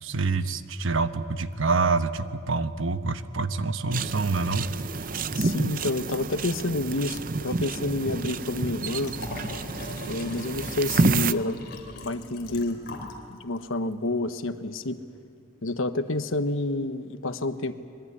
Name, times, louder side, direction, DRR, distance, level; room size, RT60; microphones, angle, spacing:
voice 1, 0.0-4.7, right 3 dB, 85° right, 10 dB, 1.1 m, -26 dB
sound 1, 3.9-11.3, right 3 dB, 45° right, 0.6 m, -29 dB
voice 2, 5.3-9.1 10.1-11.6 12.0-12.8 13.3-15.0 15.6-17.7, left 2 dB, 85° left, 10 dB, 1.2 m, -29 dB
Liquid, 9.0-13.2 13.6-13.7, left 2 dB, 50° left, 3.3 m, -39 dB
25.0 x 21.5 x 9.8 m, 2.3 s
head